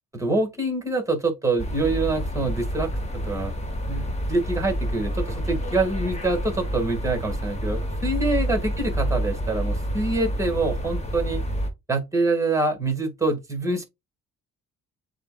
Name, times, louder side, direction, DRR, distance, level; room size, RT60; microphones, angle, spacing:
voice 1, 0.1-2.9 3.2-3.5 3.9-11.4 11.9-13.8, right 2 dB, 10° right, 2.1 m, -25 dB
sound 1, 1.6-11.7, equal, 20° left, 1.3 m, -28 dB
7.4 x 2.6 x 2.4 m
cardioid pair, 90°, 30 cm